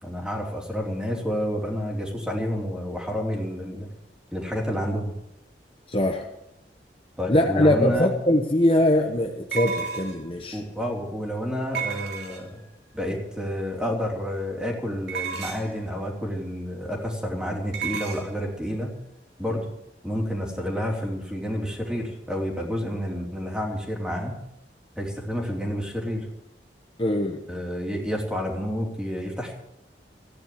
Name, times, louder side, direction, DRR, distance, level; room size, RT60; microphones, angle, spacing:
voice 1, 0.0-3.9 4.3-5.1 7.2-8.1 10.5-12.6 12.9-19.0 19.4-19.7 20.0-24.4 25.0-26.3 27.5-29.5, equal, 5° right, 0 dB, 3.1 m, -29 dB
voice 2, 5.9-6.3 7.3-10.6 27.0-27.4, left 1 dB, 30° left, 2 dB, 1.2 m, -22 dB
sound 1, 7.9-8.0 9.5-10.3 11.7-12.6 15.1-15.8 17.7-18.3, right 6 dB, 65° right, 3.3 m, -32 dB
16.0 x 10.5 x 7.6 m, 0.86 s
head